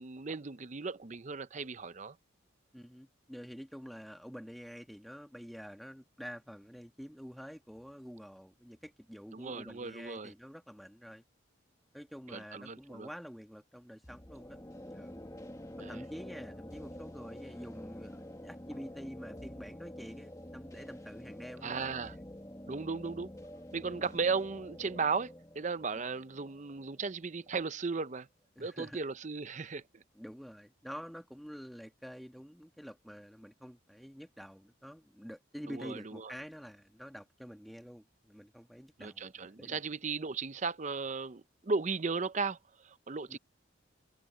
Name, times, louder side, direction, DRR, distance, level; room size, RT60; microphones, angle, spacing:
voice 1, 0.0-2.2 9.3-10.3 12.3-13.1 15.8-16.0 21.6-22.1 22.7-23.3 23.7-28.3 28.6-30.0 35.7-36.3 39.0-43.4, right 4 dB, 35° right, 0.6 m, -36 dB
voice 2, 2.7-11.2 11.9-15.3 15.9-21.9 23.8-24.1 25.9-26.1 28.5-29.0 30.1-39.8 43.3-43.4, equal, ahead, 1.3 m, -48 dB
sound 1, 14.0-27.7, left 1 dB, 15° left, 1.6 m, -48 dB
head